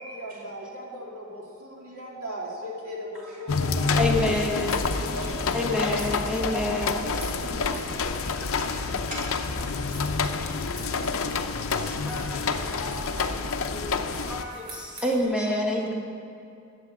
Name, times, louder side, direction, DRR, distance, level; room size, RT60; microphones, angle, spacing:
voice 1, 0.0-4.1 4.4-4.5 5.1-6.1, equal, 85° right, -3 dB, 2.8 m, -38 dB
sound 1, 3.5-14.4, left 4 dB, 70° left, 0.6 m, -28 dB
sound 2, 3.9-15.2, right 2 dB, 70° right, 3.0 m, -49 dB
voice 2, 4.0-4.8 5.5-7.2 11.8-13.1 13.7-15.9, left 1 dB, 5° right, -1 dB, 1.4 m, -29 dB
voice 3, 7.4-9.2 9.6-9.7, left 1 dB, 35° right, -6 dB, 3.3 m, -41 dB
12.0 x 7.6 x 7.4 m, 2.6 s
head